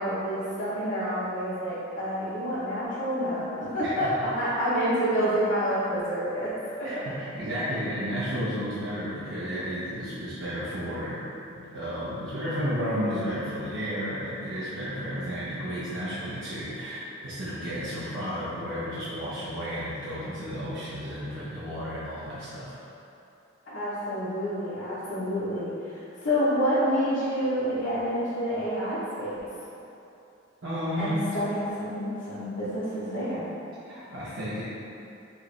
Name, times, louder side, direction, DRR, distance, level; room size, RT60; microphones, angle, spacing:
voice 1, 0.0-6.9 23.6-29.4 31.0-33.5, equal, 65° left, -12 dB, 0.9 m, -28 dB
voice 2, 6.8-11.2 11.5-22.8 30.6-31.2 33.8-34.6, equal, 65° right, -11 dB, 0.8 m, -32 dB
4.7 x 3.0 x 3.2 m, 2.8 s
head